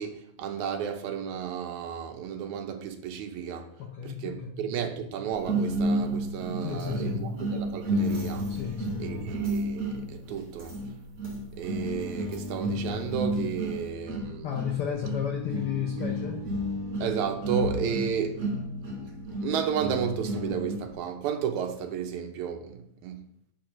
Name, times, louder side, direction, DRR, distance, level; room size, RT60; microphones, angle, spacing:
voice 1, 0.0-3.7 4.0-8.6 9.0-10.8 11.5-14.5 17.0-18.4 19.4-23.3, right 8 dB, 80° right, 2.3 m, -33 dB
voice 2, 3.8-4.7 6.6-7.3 8.5-9.0 14.4-16.4, left 8 dB, 75° left, 1.3 m, -32 dB
sound 1, 5.4-20.9, right 1 dB, 50° right, 4.4 m, -32 dB
11.0 x 4.0 x 5.8 m
omnidirectional pair, 3.4 m